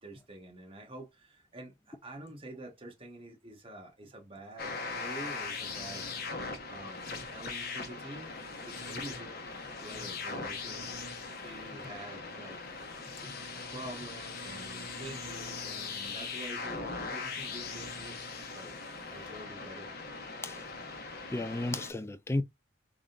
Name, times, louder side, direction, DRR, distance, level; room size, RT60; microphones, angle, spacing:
voice 1, 0.0-6.1 6.7-8.3 8.7-9.3 9.8-10.9 11.4-12.6 13.5-18.2 18.5-18.8 19.1-19.9, right 1 dB, 30° right, 1.1 m, -47 dB
sound 1, 4.6-21.9, left 4 dB, 50° left, 1.1 m, -40 dB
voice 2, 21.3-22.4, left 2 dB, 15° left, 0.3 m, -33 dB
3.9 x 3.6 x 2.4 m
head